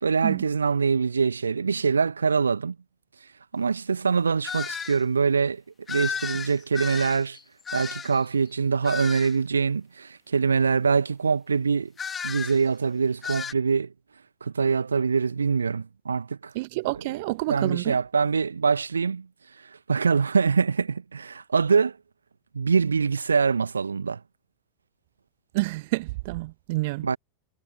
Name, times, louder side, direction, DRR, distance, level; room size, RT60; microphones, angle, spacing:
voice 1, 0.0-2.7 3.5-5.6 5.9-7.4 7.7-11.9 12.2-13.9 14.4-16.5 17.5-19.2 19.9-22.0 22.5-24.2 27.0-27.2, right 5 dB, 75° right, 1.2 m, -24 dB
sound 1, 4.4-5.0 5.9-8.2 8.8-9.4 12.0-12.6 13.2-13.5, left 7 dB, 20° left, 1.7 m, -33 dB
voice 2, 16.5-18.0 25.5-27.1, right 21 dB, 50° right, 1.4 m, -28 dB
figure-of-eight pair, 90°, 0 cm